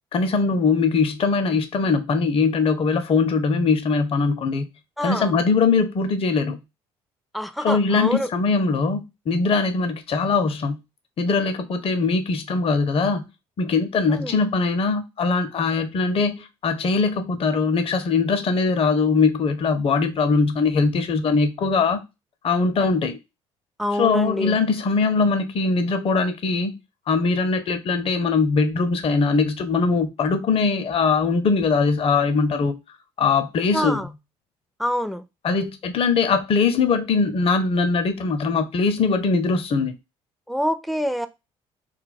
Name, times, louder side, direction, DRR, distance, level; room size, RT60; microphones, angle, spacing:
voice 1, 0.1-4.7 5.0-6.6 7.6-10.8 11.2-13.2 13.6-22.0 22.4-23.2 24.0-26.7 27.1-32.8 33.2-34.0 35.4-40.0, left 4 dB, 45° left, 0.6 m, -21 dB
voice 2, 5.0-5.3 7.3-8.3 14.1-14.4 23.8-24.6 33.7-34.1 34.8-35.2 40.5-41.3, equal, ahead, 0.4 m, -26 dB
2.3 x 2.2 x 3.9 m
hypercardioid pair, 65°, 13 cm